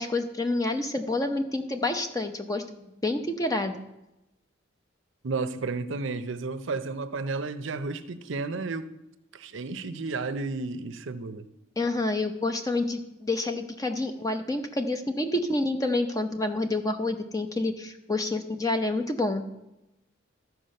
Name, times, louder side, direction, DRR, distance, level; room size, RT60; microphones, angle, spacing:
voice 1, 0.0-3.8 11.8-19.4, left 2 dB, 15° left, 0.7 m, -28 dB
voice 2, 5.2-8.9 9.3-11.5, right 3 dB, 65° right, 0.6 m, -32 dB
13.0 x 4.8 x 6.5 m
head